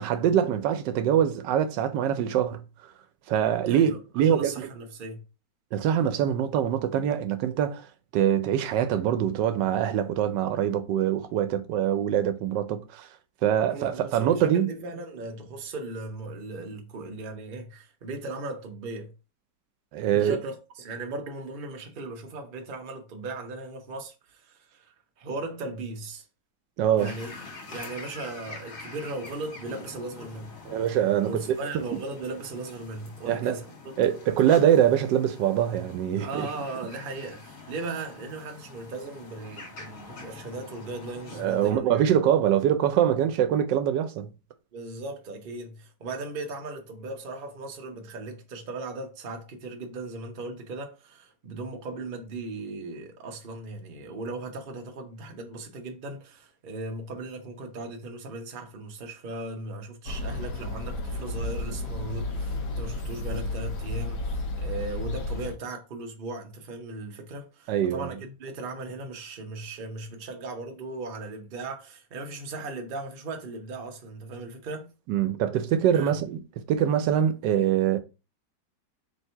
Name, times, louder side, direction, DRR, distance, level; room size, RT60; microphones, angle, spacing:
voice 1, 0.0-2.6 3.3-4.7 5.7-7.9 8.1-13.1 13.4-14.7 19.9-20.4 26.8-27.1 30.6-31.6 33.2-33.5 34.0-36.5 41.3-44.3 67.7-68.1 75.1-76.4 76.7-78.0, right 9 dB, 85° right, 1.3 m, -24 dB
voice 2, 3.6-5.2 13.7-19.1 20.1-26.3 27.0-27.4 27.7-30.6 31.2-33.9 36.2-42.0 44.7-74.9 75.9-76.1, right 2 dB, 45° right, 0.7 m, -37 dB
sound 1, 27.0-41.7, left 3 dB, 55° left, 1.4 m, -45 dB
sound 2, 60.0-65.5, left 2 dB, 75° left, 1.4 m, -32 dB
3.5 x 2.7 x 4.4 m
omnidirectional pair, 1.9 m